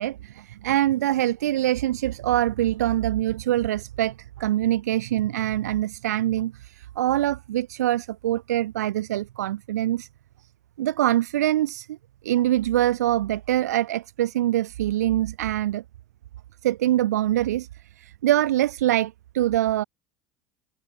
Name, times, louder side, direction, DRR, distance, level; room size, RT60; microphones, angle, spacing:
voice 1, 0.0-10.1 10.8-12.0 12.2-15.8 16.6-17.7 18.0-19.8, right 13 dB, 85° right, 2.8 m, -24 dB
open air
hypercardioid pair, 75°, 9 cm